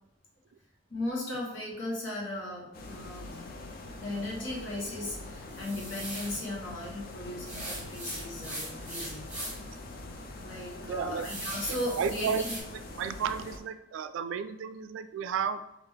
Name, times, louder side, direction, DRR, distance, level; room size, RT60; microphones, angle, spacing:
voice 1, 0.9-3.4 4.0-9.3 10.4-12.5, left 1 dB, 80° left, -3 dB, 1.2 m, -36 dB
sound 1, 2.7-13.6, left 2 dB, 50° left, 0.5 m, -44 dB
sound 2, 5.5-6.4 7.4-9.7 10.1-10.2 10.7-12.6, right 1 dB, 5° right, 1.1 m, -40 dB
voice 2, 10.9-11.3 12.0-12.4 13.0-15.6, right 7 dB, 80° right, 12 dB, 0.3 m, -32 dB
3.5 x 2.5 x 3.5 m, 0.87 s
head